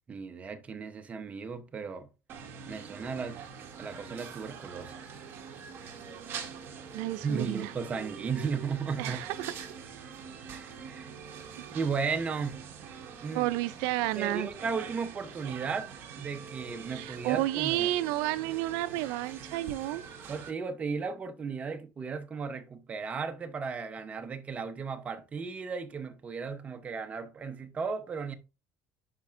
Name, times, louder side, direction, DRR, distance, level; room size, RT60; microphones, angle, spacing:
voice 1, 0.1-2.1 2.7-3.4 3.8-4.9 7.2-9.2 10.5-11.1 11.7-12.6 13.2-13.5 14.1-15.9 16.2-17.9 20.3-28.3, right 5 dB, 25° right, 0.8 m, -35 dB
washington insidefoodstand, 2.3-20.5, right 6 dB, 45° right, 1.6 m, -44 dB
voice 2, 6.9-7.7 9.0-9.7 13.3-14.5 16.9-20.0, right 16 dB, 80° right, 0.4 m, -31 dB
11.5 x 4.3 x 2.5 m
cardioid pair, 145°, 6 cm